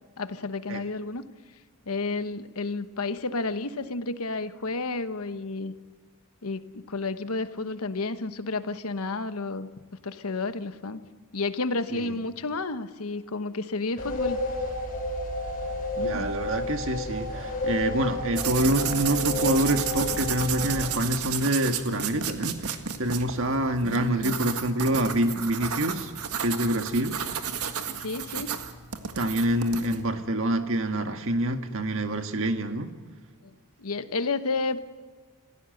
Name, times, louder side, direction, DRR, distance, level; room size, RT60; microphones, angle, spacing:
voice 1, 0.2-1.3 1.9-5.7 6.4-9.7 10.0-11.0 11.3-14.4 16.0-16.3 23.8-24.4 28.0-28.6 33.4-33.5 33.8-34.8, left 3 dB, 75° left, 1.1 m, -31 dB
sound 1, 14.0-20.8, left 2 dB, 40° left, 5.9 m, -31 dB
voice 2, 16.0-22.7 23.0-26.1 26.4-27.2 29.1-32.9, right 1 dB, 60° right, 1.7 m, -26 dB
sound 2, 18.4-30.0, right 7 dB, 85° right, 1.8 m, -33 dB
26.5 x 16.0 x 7.9 m
head